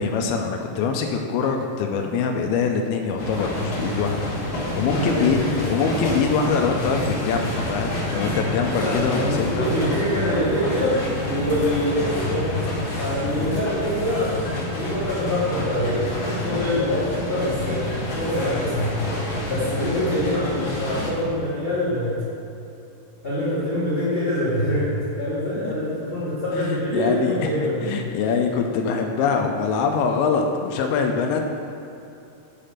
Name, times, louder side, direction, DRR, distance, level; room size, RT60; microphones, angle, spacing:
voice 1, 0.0-5.4 5.7-9.7 25.6-25.7 26.5-31.5, left 5 dB, 90° left, 3 dB, 2.5 m, -24 dB
sound 1, 3.2-21.1, left 2 dB, 75° left, 1.1 m, -28 dB
voice 2, 4.7-5.6 8.8-12.6 13.0-17.9 18.1-18.9 19.5-22.1 23.2-27.9, equal, 25° left, -12 dB, 1.2 m, -25 dB
8.3 x 5.1 x 5.7 m, 2.7 s
omnidirectional pair, 4.3 m